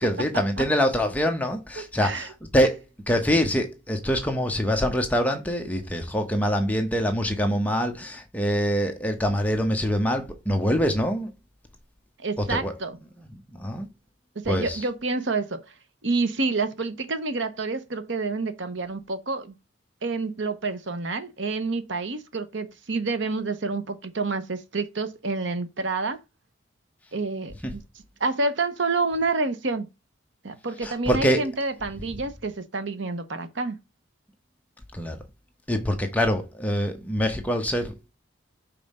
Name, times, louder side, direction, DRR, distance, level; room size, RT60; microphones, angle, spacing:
voice 1, 0.0-2.8 3.1-11.3 12.4-12.7 13.3-13.9 14.5-14.8 27.6-27.8 30.8-31.5 34.9-35.2 35.7-38.1, equal, 5° left, 0.9 m, -25 dB
voice 2, 1.8-2.3 12.2-13.0 14.4-15.6 16.0-19.5 20.0-26.2 27.1-27.8 28.2-29.9 30.4-33.8, right 3 dB, 65° right, 0.9 m, -28 dB
5.5 x 4.1 x 5.4 m
head